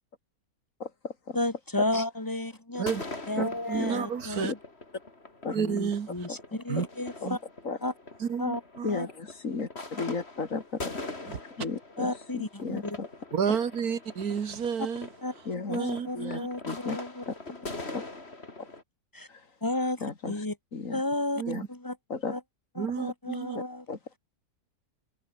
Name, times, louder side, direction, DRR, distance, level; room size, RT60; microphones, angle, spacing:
voice 1, 0.8-1.4 3.4-3.5 3.7-3.9 4.4-4.5 5.4-5.6 6.3-6.4 7.2-7.3 7.6-7.8 8.8-13.1 15.5-15.9 16.1-16.4 16.7-17.0 17.3-17.4 17.9-18.0 19.3-19.5 20.0-20.4 20.7-21.0 21.5-21.6 22.1-22.4 23.5-24.0, left 4 dB, 60° left, 2.8 m, -35 dB
voice 2, 1.3-2.8 3.3-4.6 5.5-7.4 7.8-7.9 8.4-8.6 8.9-9.1 12.0-13.0 14.8-14.9 15.2-15.3 15.7-17.2 19.1-19.3 19.6-20.5 20.9-21.4 21.7-22.0 22.3-22.4 22.8-23.9, left 1 dB, 15° left, 1.8 m, -32 dB
sound 1, 2.7-18.8, left 2 dB, 45° left, 3.9 m, -43 dB
voice 3, 3.4-4.5 5.5-6.1 6.7-6.9 7.2-7.4 8.2-9.0 11.3-11.4 13.3-15.1 15.7-16.5 21.4-21.6 22.8-23.6, right 7 dB, 80° right, 2.0 m, -31 dB
omnidirectional pair, 1.6 m